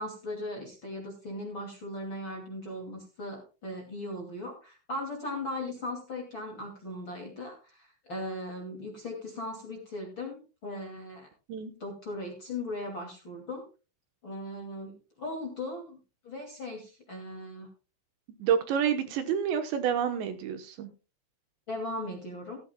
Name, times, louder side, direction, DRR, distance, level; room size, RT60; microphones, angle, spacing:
voice 1, 0.0-11.3 11.8-13.6 14.2-16.0 16.2-17.7 21.7-22.6, left 1 dB, 35° left, 0 dB, 2.3 m, -38 dB
voice 2, 18.4-20.9, right 8 dB, 70° right, 8 dB, 3.1 m, -28 dB
15.5 x 14.5 x 2.3 m, 0.31 s
omnidirectional pair, 5.6 m